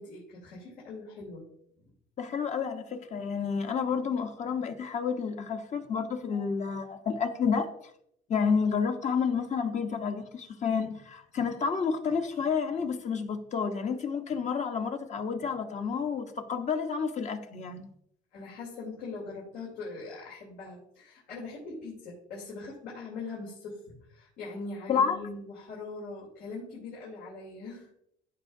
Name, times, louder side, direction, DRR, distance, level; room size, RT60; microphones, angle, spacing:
voice 1, 0.0-1.5 6.3-6.5 12.4-12.5 18.3-27.9, left 3 dB, 80° left, 3.2 m, -42 dB
voice 2, 2.2-7.7 8.3-17.8 24.9-25.2, left 6 dB, 45° left, 1.0 m, -30 dB
14.0 x 5.8 x 2.7 m
cardioid pair, 110°, 17 cm